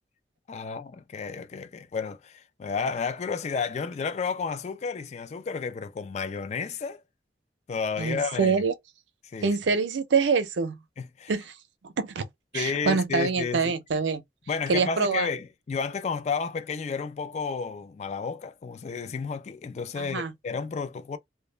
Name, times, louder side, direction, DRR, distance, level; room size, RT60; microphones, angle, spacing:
voice 1, 0.5-7.0 7.7-8.6 9.2-9.5 11.0-11.3 12.5-13.7 14.5-21.2, left 5 dB, 40° left, 0.3 m, -32 dB
voice 2, 8.0-8.7 9.4-10.8 11.3-11.5 11.8-12.3 12.5-14.2 14.7-15.3 20.0-20.3, right 5 dB, 85° right, 0.5 m, -25 dB
2.1 x 2.0 x 3.1 m
head